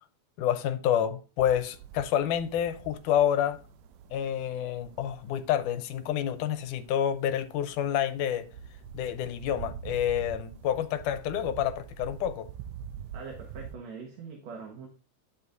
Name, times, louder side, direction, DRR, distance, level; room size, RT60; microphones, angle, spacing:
voice 1, 0.4-3.6 4.1-8.5 8.9-12.5, left 10 dB, 80° left, 2.2 m, -28 dB
sound 1, 1.4-13.8, right 8 dB, 80° right, 1.6 m, -46 dB
voice 2, 13.1-14.9, right 5 dB, 65° right, 2.4 m, -42 dB
11.0 x 7.1 x 2.6 m
omnidirectional pair, 3.6 m